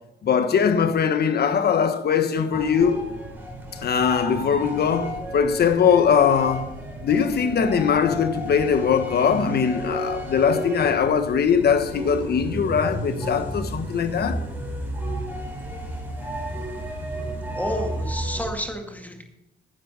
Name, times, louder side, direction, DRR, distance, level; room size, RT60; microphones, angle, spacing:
voice 1, 0.2-3.1 3.8-6.7 7.0-14.4, left 7 dB, 55° left, 1.2 m, -21 dB
sound 1, 2.5-18.5, equal, 10° right, 3.9 m, -32 dB
voice 2, 17.2-19.2, equal, 10° left, 2.0 m, -31 dB
10.0 x 7.6 x 6.5 m
cardioid pair, 90°, 20 cm